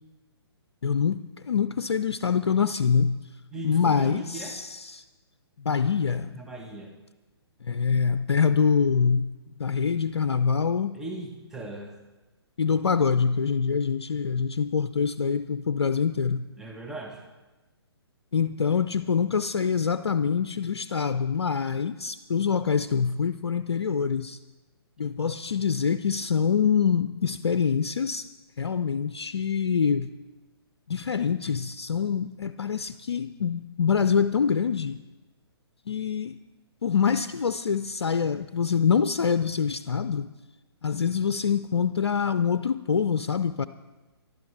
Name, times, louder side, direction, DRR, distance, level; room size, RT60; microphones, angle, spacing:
voice 1, 0.8-3.3 3.6-5.0 5.6-6.4 7.6-11.0 12.6-16.5 18.3-24.4 25.0-28.3 28.6-30.1 30.9-35.0 35.9-36.4 36.8-40.3 40.8-43.7, left 6 dB, 70° left, 12 dB, 0.6 m, -25 dB
voice 2, 3.5-4.6 6.3-6.9 10.9-11.9 16.6-17.2, right 2 dB, 5° right, 0 dB, 1.3 m, -38 dB
24.5 x 12.0 x 3.3 m, 1.2 s
figure-of-eight pair, 130°, 14 cm